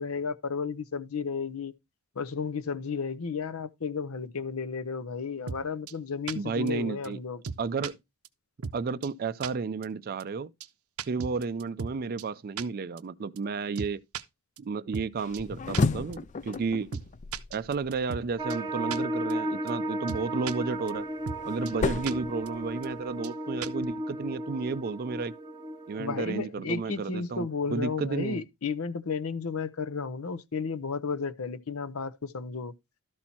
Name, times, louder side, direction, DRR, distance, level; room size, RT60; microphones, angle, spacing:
voice 1, 0.0-1.7 2.2-7.4 26.0-32.7, left 5 dB, 75° left, 0.7 m, -33 dB
sound 1, 5.5-5.6 5.9-6.0 6.3-6.4 6.7-6.8 7.0-7.1 7.4-7.9 8.2-8.3 8.6-8.8 9.0-9.1 9.4-9.5 9.8-9.9 10.2-10.3 10.6-10.7 11.0-11.9 12.2-12.3 12.6-12.7 13.0-13.1 13.4-13.5 13.8-14.2 14.6-14.7 14.9-15.1 15.3-15.4 15.7-15.8 16.1-16.2 16.5-16.6 16.9-17.1 17.3-18.2 18.5-18.6 18.9-19.0 19.3-19.4 19.7-19.8 20.1-20.5 20.9-21.0 21.3-21.4 21.7-21.8 22.0-22.1 22.5-22.6 22.8-22.9 23.2-23.3 23.6-23.8, right 6 dB, 85° right, 0.6 m, -36 dB
voice 2, 6.3-7.2 7.6-8.0 8.7-10.5 11.1-14.0 14.6-17.0 17.5-21.1 21.5-25.3 25.9-28.4, right 4 dB, 45° right, 0.4 m, -32 dB
sound 2, 15.2-18.3 20.5-23.1, left 3 dB, 35° left, 0.4 m, -33 dB
sound 3, 18.4-26.4, right 1 dB, 20° right, 0.9 m, -34 dB
12.5 x 4.3 x 4.3 m
head